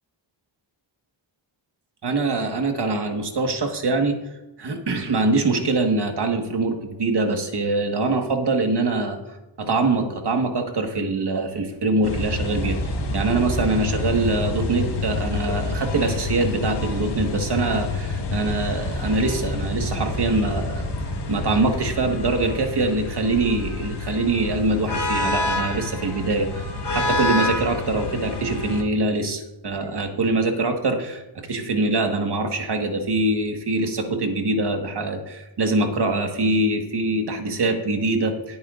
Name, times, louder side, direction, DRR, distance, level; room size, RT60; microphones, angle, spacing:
voice 1, 2.0-4.2 4.6-9.2 9.6-12.8 13.1-20.8 21.3-26.6 26.9-38.6, right 2 dB, 55° right, 4 dB, 1.6 m, -23 dB
sound 1, 12.0-28.8, left 2 dB, 60° left, 1.6 m, -27 dB
18.0 x 9.1 x 2.5 m, 0.99 s
wide cardioid pair, 120°, 47 cm